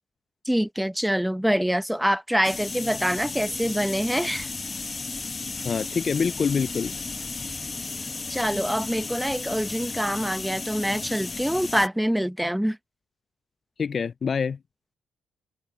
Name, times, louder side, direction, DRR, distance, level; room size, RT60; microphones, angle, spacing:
voice 1, 0.4-4.5 8.3-12.8, equal, 5° right, 1.0 m, -25 dB
sound 1, 2.4-11.9, left 3 dB, 30° left, 1.3 m, -34 dB
sound 2, 2.9-8.5, left 8 dB, 65° left, 2.7 m, -48 dB
voice 2, 5.6-6.9 13.8-14.6, left 6 dB, 45° left, 0.4 m, -25 dB
cardioid pair, 85°, 0 cm